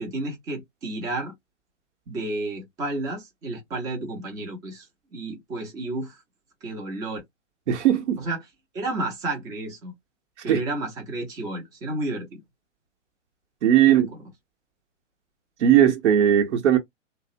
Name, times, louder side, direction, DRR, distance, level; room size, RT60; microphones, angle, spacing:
voice 1, 0.0-1.3 2.1-4.9 5.1-6.2 6.6-7.2 8.2-8.4 8.7-9.9 10.4-12.4 13.9-14.1, right 2 dB, 10° right, 0.4 m, -31 dB
voice 2, 7.7-8.2 10.5-10.6 13.6-14.1 15.6-16.8, right 10 dB, 65° right, 0.9 m, -18 dB
2.6 x 2.0 x 2.5 m
hypercardioid pair, 125°, 38 cm